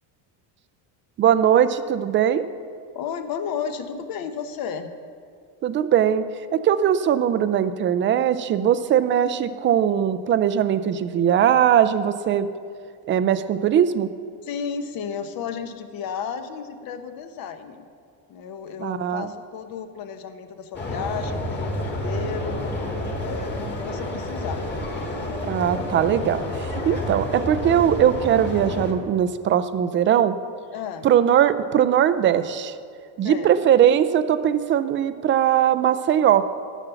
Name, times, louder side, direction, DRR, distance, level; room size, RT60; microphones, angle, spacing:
voice 1, 1.2-2.4 5.6-6.2 6.5-12.5 13.1-14.1 18.8-19.3 25.4-30.3 31.0-32.7 33.2-36.4, right 9 dB, 30° right, 12 dB, 0.4 m, -20 dB
voice 2, 2.9-4.9 14.4-17.8 18.3-22.6 23.2-24.7 30.7-31.1 33.2-33.6, left 7 dB, 50° left, 8 dB, 1.0 m, -33 dB
sound 1, 20.7-28.9, left 1 dB, 25° left, 1.8 m, -29 dB
14.0 x 7.1 x 6.9 m, 2.3 s
cardioid pair, 155°, 44 cm